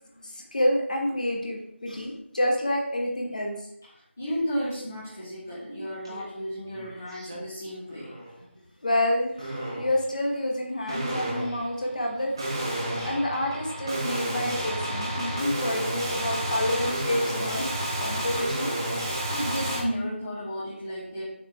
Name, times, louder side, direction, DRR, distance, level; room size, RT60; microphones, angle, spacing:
voice 1, 0.2-3.6 8.8-12.4 13.0-17.7 18.0-18.7, left 1 dB, 40° left, 0 dB, 1.2 m, -28 dB
voice 2, 4.2-8.2 19.3-21.2, equal, 10° left, -9 dB, 0.4 m, -33 dB
sound 1, 6.0-6.2 6.6-7.4 7.9-8.3 9.4-10.0 10.9-19.8, right 1 dB, 20° right, 0.7 m, -31 dB
6.6 x 3.4 x 4.4 m, 0.75 s
figure-of-eight pair, 165°, 7 cm